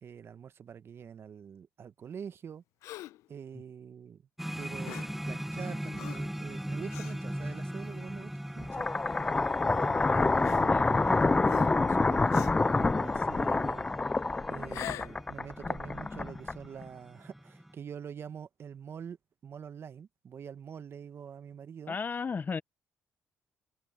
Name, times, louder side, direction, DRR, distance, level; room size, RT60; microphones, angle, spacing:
voice 1, 0.0-2.6 3.3-4.2 4.6-8.9 9.3-13.9 14.5-19.2 19.4-22.0, right 7 dB, 50° right, 1.1 m, -45 dB
Gasp, 2.8-3.3 4.8-5.2 6.0-6.3 6.9-7.2 7.9-8.0 9.1-9.2 10.4-11.1 11.4-11.9 12.3-12.7 14.6-15.2, left 15 dB, 80° left, 0.7 m, -43 dB
sound 1, 4.4-17.7, equal, 5° right, 0.8 m, -41 dB
sound 2, 8.6-16.9, left 3 dB, 20° left, 0.3 m, -27 dB
voice 2, 10.6-10.9 21.9-22.6, left 5 dB, 35° left, 0.8 m, -34 dB
supercardioid pair, 65°, 5 cm